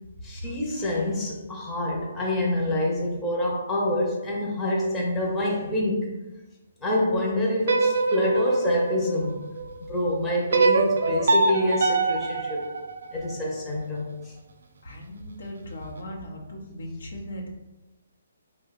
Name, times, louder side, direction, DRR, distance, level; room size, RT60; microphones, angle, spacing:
voice 1, 0.2-6.1 6.8-9.4 9.8-12.6 13.1-14.3, left 1 dB, 15° left, -4 dB, 0.7 m, -26 dB
sound 1, 7.6-9.8 10.5-13.6, right 3 dB, 70° right, 0.4 m, -24 dB
voice 2, 14.8-17.5, equal, 75° left, 0 dB, 0.8 m, -38 dB
2.8 x 2.2 x 3.9 m, 1.0 s
hypercardioid pair, 150°, 0 cm